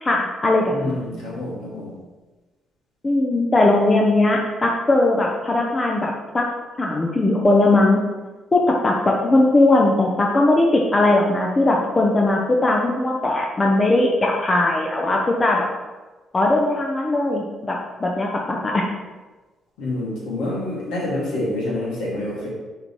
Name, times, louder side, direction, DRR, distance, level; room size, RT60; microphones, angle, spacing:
voice 1, 0.0-1.0 3.0-6.5 6.8-8.0 8.5-15.7 16.3-18.9, left 2 dB, 30° left, 0 dB, 0.9 m, -19 dB
voice 2, 0.7-2.0 19.8-22.5, left 1 dB, 70° left, -5 dB, 2.1 m, -27 dB
10.0 x 3.8 x 3.1 m, 1.2 s
figure-of-eight pair, 45°, 0 cm